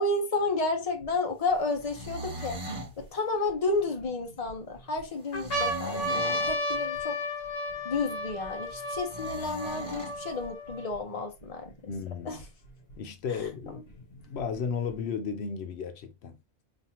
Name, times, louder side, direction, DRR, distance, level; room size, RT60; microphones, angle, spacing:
voice 1, 0.0-2.6 3.1-7.2 7.8-11.7 12.3-12.4, left 3 dB, 40° left, 0.9 m, -31 dB
sound 1, 1.0-1.1 1.8-3.0 3.7-4.5 5.0-5.1 5.3-11.0 11.7-11.8 11.9-12.9 13.9-14.9, left 1 dB, 70° left, 1.4 m, -33 dB
sound 2, 1.7-2.9 5.3-6.6 9.1-10.2, right 1 dB, 45° right, 1.0 m, -39 dB
voice 2, 11.9-12.4 13.0-16.4, left 6 dB, 85° left, 0.9 m, -35 dB
5.1 x 2.5 x 2.9 m
omnidirectional pair, 1.0 m